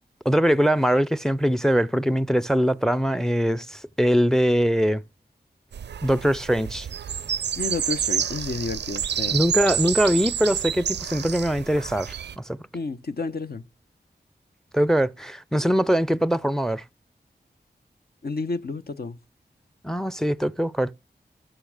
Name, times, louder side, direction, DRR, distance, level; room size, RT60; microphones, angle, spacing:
voice 1, 0.2-5.0 6.0-6.9 9.3-12.6 14.7-16.8 19.8-20.9, equal, 5° left, 0.5 m, -22 dB
sound 1, 5.7-12.3, right 8 dB, 85° right, 0.5 m, -29 dB
voice 2, 7.6-9.4 12.7-13.6 18.2-19.2, left 3 dB, 65° left, 1.0 m, -30 dB
13.0 x 6.5 x 4.9 m
cardioid pair, 55°, 17 cm